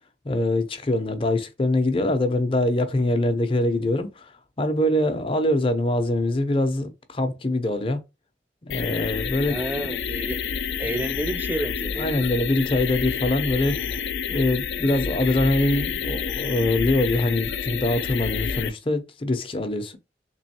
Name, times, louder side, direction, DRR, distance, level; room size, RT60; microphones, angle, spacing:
voice 1, 0.2-4.3 4.6-8.0 8.6-9.6 12.0-13.8 14.3-20.0, left 1 dB, 30° left, 0.6 m, -23 dB
sound 1, 8.7-18.7, left 6 dB, 80° left, 0.4 m, -29 dB
voice 2, 9.5-10.4 10.8-12.1, right 1 dB, 10° right, 0.4 m, -30 dB
3.7 x 3.0 x 2.8 m
head